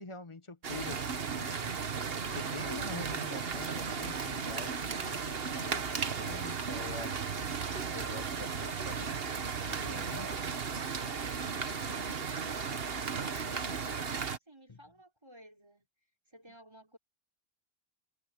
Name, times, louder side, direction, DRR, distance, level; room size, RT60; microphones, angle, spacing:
voice 1, 0.0-9.1 9.6-10.3 14.7-14.8, left 3 dB, 30° left, 1.3 m, -46 dB
sound 1, 0.6-14.4, right 5 dB, 65° right, 1.5 m, -35 dB
voice 2, 12.1-15.9 16.3-17.0, right 1 dB, 25° right, 5.3 m, -57 dB
omnidirectional pair, 1.1 m